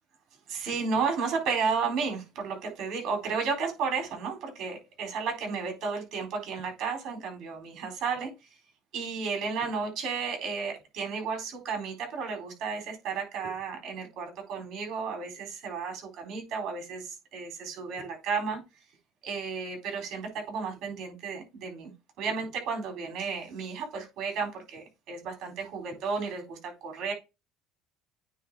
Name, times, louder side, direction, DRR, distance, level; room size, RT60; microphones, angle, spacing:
voice 1, 0.5-8.3 8.9-18.6 19.2-21.9 22.2-27.1, right 5 dB, 50° right, 4 dB, 4.2 m, -33 dB
9.2 x 3.4 x 4.8 m, 0.25 s
cardioid pair, 135°, 0 cm